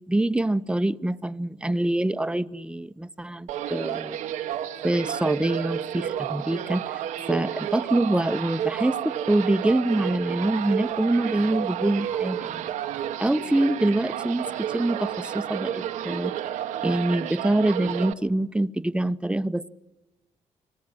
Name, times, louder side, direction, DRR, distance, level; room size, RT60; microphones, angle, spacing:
voice 1, 0.1-4.2 4.8-7.0 7.3-12.7 13.2-14.4 14.7-16.3 16.8-19.7, right 1 dB, 10° right, 12 dB, 0.8 m, -25 dB
sound 1, 3.5-18.1, right 10 dB, 90° right, 1.1 m, -31 dB
29.5 x 19.5 x 7.8 m, 1.0 s
cardioid pair, 65°, 13 cm